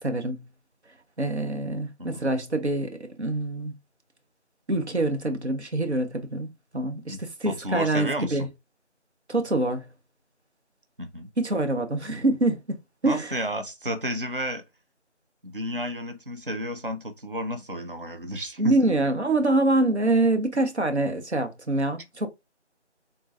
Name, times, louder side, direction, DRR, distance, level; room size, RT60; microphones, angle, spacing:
voice 1, 0.0-0.4 1.2-2.9 3.2-3.7 4.7-8.5 9.3-9.9 11.4-12.6 13.0-13.3 18.6-22.3, right 2 dB, 70° right, 0.9 m, -25 dB
voice 2, 7.5-8.5 11.0-11.3 13.0-14.6 15.4-18.9, equal, 50° right, 0.6 m, -32 dB
3.7 x 2.3 x 2.6 m
figure-of-eight pair, 170°, 36 cm